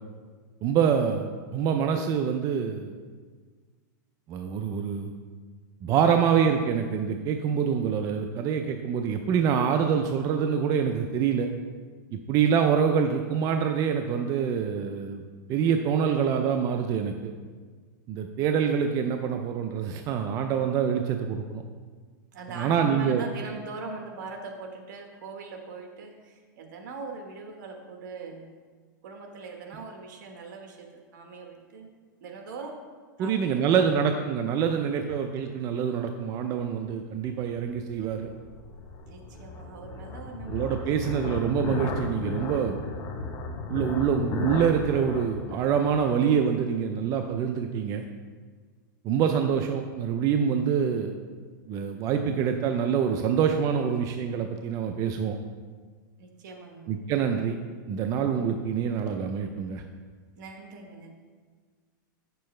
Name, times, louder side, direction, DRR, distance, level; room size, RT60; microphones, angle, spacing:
voice 1, 0.6-2.9 4.3-5.1 5.8-11.5 12.1-15.2 15.5-17.3 18.1-21.6 22.6-23.2 33.2-38.3 40.5-42.8 43.7-48.0 49.0-51.1 51.7-55.4 56.9-57.6 57.9-59.8, right 7 dB, 30° right, 5 dB, 0.4 m, -26 dB
voice 2, 22.3-28.5 29.0-31.9 32.2-32.8 33.2-34.0 39.1-40.8 56.2-56.9 60.4-61.1, right 4 dB, 65° right, 3 dB, 1.3 m, -41 dB
sound 1, 37.1-46.7, left 3 dB, 30° left, 0.9 m, -35 dB
8.5 x 6.8 x 3.2 m, 1.5 s
supercardioid pair, 140°, 11 cm